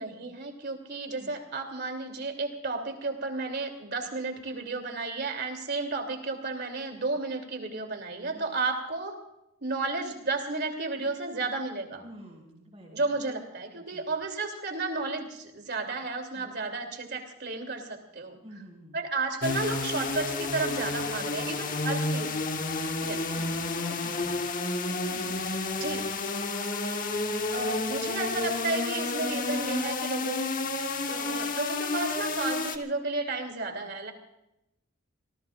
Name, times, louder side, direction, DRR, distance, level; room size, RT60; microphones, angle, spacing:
voice 1, 0.0-9.2 9.6-12.0 12.9-18.4 18.9-22.5 23.0-23.2 25.8-26.1 27.5-30.5 31.1-34.1, right 3 dB, 50° right, 4 dB, 3.0 m, -32 dB
voice 2, 12.0-13.1 13.9-14.0 16.3-16.5 18.4-19.0 21.2-21.7 22.9-24.4 24.9-26.0, right 1 dB, 20° right, -8 dB, 5.2 m, -48 dB
sound 1, 19.4-32.8, left 3 dB, 40° left, 1.2 m, -30 dB
27.0 x 18.5 x 2.5 m, 0.87 s
head